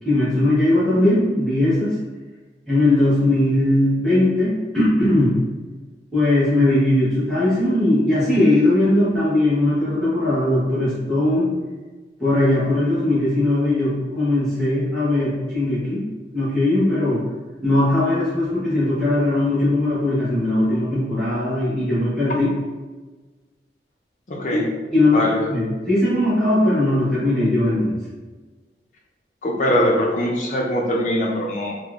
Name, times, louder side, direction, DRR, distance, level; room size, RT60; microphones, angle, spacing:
voice 1, 0.0-2.0 2.7-5.4 6.1-11.5 12.2-16.1 16.3-17.3 17.6-22.5 24.5-24.6 24.9-28.0, left 1 dB, 5° left, -12 dB, 1.1 m, -19 dB
voice 2, 24.3-24.7 25.1-25.5 29.4-31.7, equal, 45° left, -1 dB, 0.4 m, -22 dB
3.5 x 2.0 x 2.4 m, 1.3 s
head